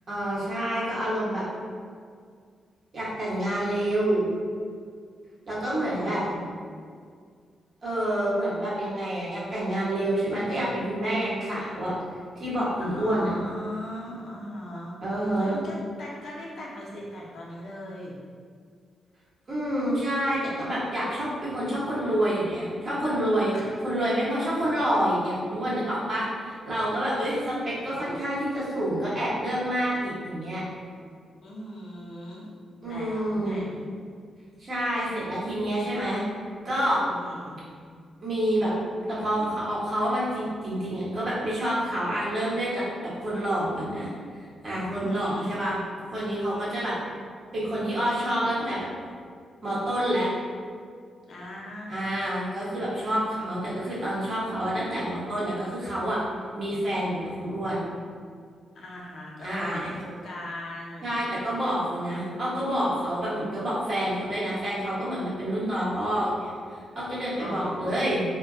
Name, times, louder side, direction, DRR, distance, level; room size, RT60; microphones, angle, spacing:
voice 1, 0.1-1.4 2.9-4.3 5.5-6.2 7.8-11.9 12.4-13.3 15.0-15.6 19.5-23.5 23.8-30.6 32.8-33.6 34.6-36.2 36.6-37.0 38.2-38.7 39.1-44.1 44.6-45.8 46.1-46.9 47.5-48.9 49.6-50.3 51.9-56.2 56.6-57.8 59.4-59.9 61.0-66.5 66.9-68.2, right 1 dB, 45° right, -8 dB, 1.0 m, -28 dB
voice 2, 5.8-6.4 12.8-15.0 15.4-18.1 23.5-23.6 31.4-32.5 32.8-33.8 37.1-37.6 44.9-45.5 46.8-47.1 51.3-52.2 58.7-61.1 67.4-68.0, left 1 dB, 65° left, -4 dB, 0.6 m, -39 dB
2.2 x 2.2 x 3.6 m, 2.1 s
cardioid pair, 105°, 0 cm